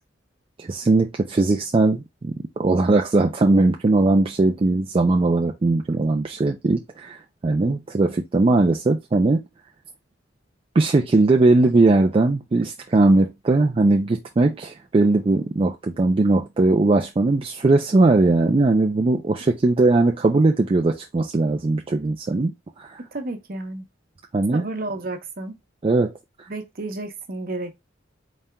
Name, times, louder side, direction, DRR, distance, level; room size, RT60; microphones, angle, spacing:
voice 1, 0.6-9.4 10.7-23.0 24.3-24.7 25.8-26.1, right 2 dB, 30° right, 0.4 m, -19 dB
voice 2, 23.0-23.9 24.5-25.6 26.5-27.8, right 2 dB, 50° right, 0.8 m, -32 dB
4.1 x 3.6 x 2.2 m
head